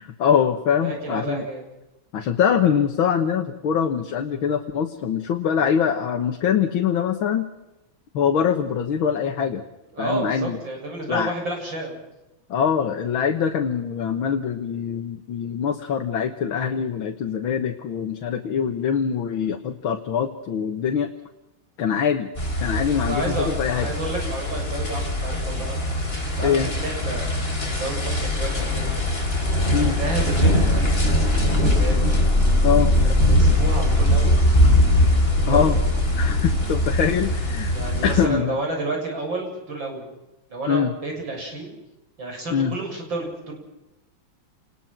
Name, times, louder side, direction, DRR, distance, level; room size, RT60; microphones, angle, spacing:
voice 1, 0.0-1.4 2.1-7.5 8.1-9.6 10.0-10.6 11.1-11.3 12.5-21.1 21.8-22.3 22.6-23.9 26.4-26.7 29.7-30.0 32.6-32.9 35.5-35.8 36.2-37.8 38.0-38.6 40.7-40.9 42.5-42.7, left 7 dB, 85° left, 5 dB, 2.1 m, -23 dB
voice 2, 0.8-1.6 9.9-12.0 22.9-25.8 26.4-27.4 27.6-28.9 29.7-30.9 31.3-34.4 35.3-35.7 37.7-40.1 40.5-41.8 42.2-43.5, right 2 dB, 70° right, 2 dB, 7.9 m, -31 dB
sound 1, 22.4-38.3, left 1 dB, 30° left, 4.0 m, -21 dB
28.0 x 20.5 x 6.0 m, 0.96 s
omnidirectional pair, 2.2 m